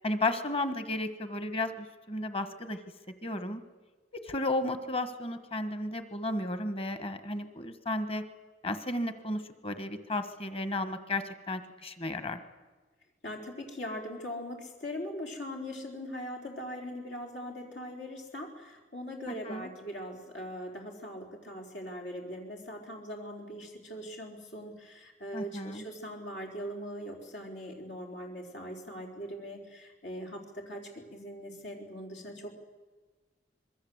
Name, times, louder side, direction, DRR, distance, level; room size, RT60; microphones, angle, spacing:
voice 1, 0.0-2.8 3.2-3.6 4.2-8.2 8.6-12.4 19.3-19.7 25.3-25.8, left 2 dB, 35° left, 10 dB, 1.4 m, -33 dB
voice 2, 13.2-32.5, equal, 85° left, 1 dB, 4.5 m, -41 dB
26.0 x 21.5 x 8.1 m, 1.3 s
head